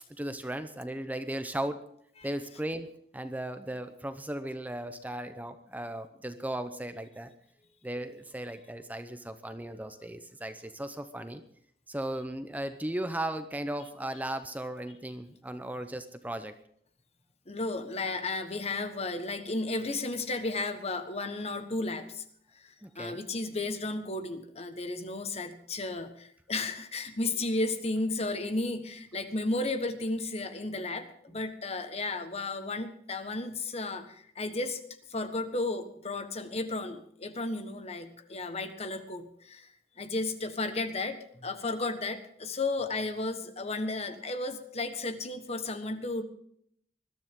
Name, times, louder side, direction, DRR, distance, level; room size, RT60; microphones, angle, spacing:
voice 1, 0.2-1.9 2.2-2.9 3.1-7.3 7.8-11.4 11.9-16.6 22.8-23.2 27.3-27.4 31.3-31.4, right 1 dB, 10° right, 9 dB, 0.8 m, -36 dB
voice 2, 17.5-22.2 22.5-34.8 35.1-39.7 40.0-46.2, left 2 dB, 35° left, 9 dB, 1.4 m, -33 dB
21.0 x 12.5 x 3.7 m, 0.65 s
head